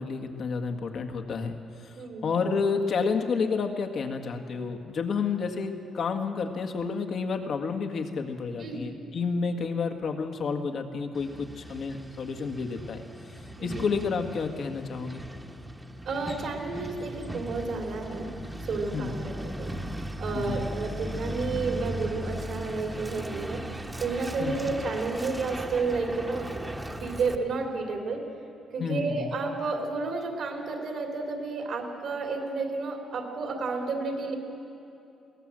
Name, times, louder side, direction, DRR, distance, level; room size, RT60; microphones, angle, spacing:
voice 1, 0.0-2.0 2.2-13.0 13.6-15.2 18.9-19.2 20.3-20.6 24.4-24.7 28.8-29.3, left 5 dB, 60° left, 5 dB, 1.8 m, -30 dB
voice 2, 2.0-2.3 8.6-8.9 13.6-13.8 16.0-18.3 18.6-19.7 20.2-23.6 24.0-26.6 27.0-28.2 28.7-34.3, right 3 dB, 70° right, 2 dB, 3.0 m, -31 dB
Truck, 11.1-27.4, right 1 dB, 10° right, 1.3 m, -38 dB
22.0 x 17.5 x 7.7 m, 2.7 s
cardioid pair, 90°, 0 cm